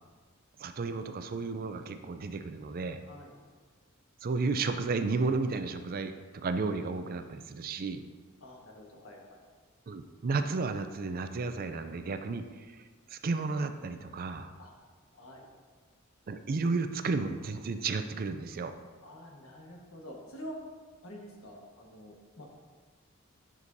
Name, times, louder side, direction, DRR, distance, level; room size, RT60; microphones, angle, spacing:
voice 1, 0.6-3.0 4.2-8.0 9.9-12.4 12.7-12.8 13.1-14.5 16.3-18.7, right 4 dB, 45° right, 9 dB, 0.4 m, -33 dB
voice 2, 8.4-9.4 14.6-14.7 15.1-15.5 19.0-20.6 21.0-22.5, equal, 80° left, -1 dB, 1.5 m, -47 dB
9.7 x 6.1 x 2.7 m, 1.5 s
head